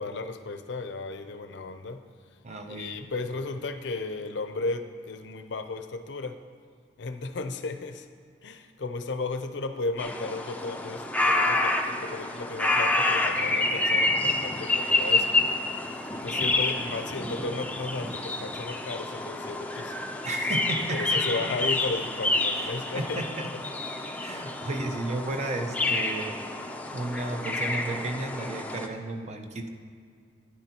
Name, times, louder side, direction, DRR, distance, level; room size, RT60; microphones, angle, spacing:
voice 1, 0.0-2.0 2.7-6.4 7.0-8.1 8.4-15.5 15.7-15.9 16.2-20.0 20.9-23.2, left 3 dB, 70° left, 8 dB, 0.5 m, -34 dB
voice 2, 2.4-3.0 20.3-21.2 22.6-22.7 23.0-23.5 24.2-29.7, right 2 dB, 40° right, 5 dB, 0.6 m, -33 dB
sound 1, 10.0-28.9, left 2 dB, 10° left, 0.5 m, -28 dB
12.5 x 9.8 x 2.9 m, 2.2 s
head